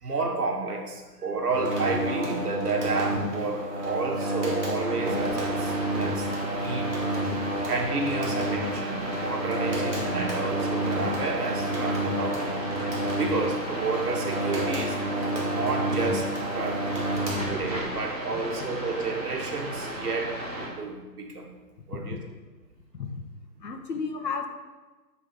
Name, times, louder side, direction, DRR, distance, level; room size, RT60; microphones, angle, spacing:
voice 1, 0.0-6.9 7.7-12.6 13.1-15.0 15.5-16.9 17.5-21.5 21.9-22.2, right 3 dB, 65° right, 1 dB, 1.5 m, -31 dB
sound 1, 1.5-18.0, right 1 dB, 45° right, 2.4 m, -30 dB
sound 2, 4.7-20.7, right 1 dB, 25° right, 1.0 m, -35 dB
voice 2, 18.3-18.7 20.7-20.8 21.9-22.2 22.9-23.2 23.6-24.5, left 5 dB, 80° left, 5 dB, 1.2 m, -34 dB
8.6 x 3.6 x 5.2 m, 1.2 s
hypercardioid pair, 175°, 50 cm